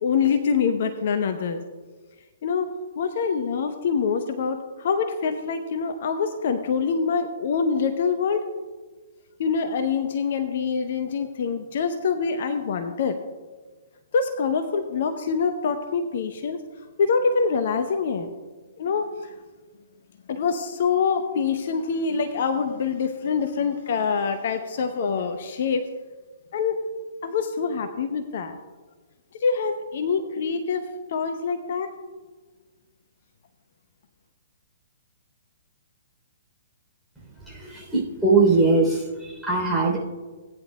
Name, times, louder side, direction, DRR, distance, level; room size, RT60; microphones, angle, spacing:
voice 1, 0.0-1.6 2.4-2.7 3.0-8.4 9.4-13.2 14.1-16.6 17.0-18.3 18.8-19.3 20.3-25.8 26.5-26.8 27.2-28.6 29.4-31.9, left 5 dB, 50° left, 7 dB, 0.8 m, -25 dB
voice 2, 37.5-40.0, right 3 dB, ahead, -5 dB, 3.3 m, -21 dB
18.0 x 10.0 x 2.2 m, 1.3 s
figure-of-eight pair, 120°, 0 cm